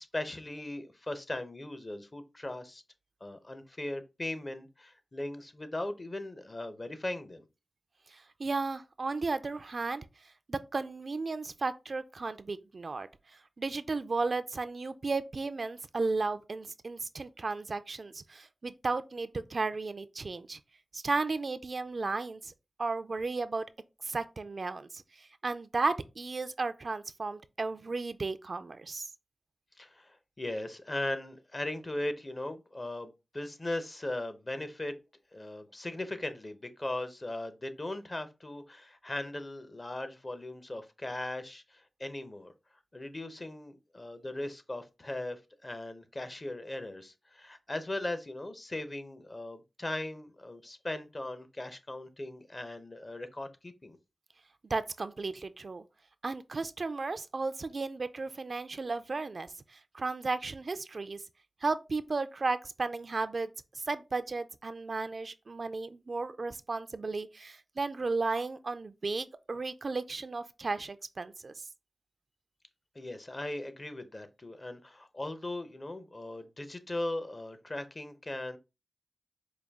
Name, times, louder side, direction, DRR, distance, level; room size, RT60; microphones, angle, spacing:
voice 1, 0.0-2.8 3.2-7.4 29.8-34.9 35.3-42.5 42.9-54.0 72.9-78.6, left 1 dB, 40° left, 0.7 m, -38 dB
voice 2, 8.1-10.0 10.5-13.1 13.6-20.6 20.9-22.5 22.8-23.7 24.0-29.1 54.7-55.8 56.2-61.2 61.6-71.5, right 3 dB, 60° right, 0.3 m, -34 dB
4.9 x 2.3 x 3.5 m
wide cardioid pair, 60°, 0 cm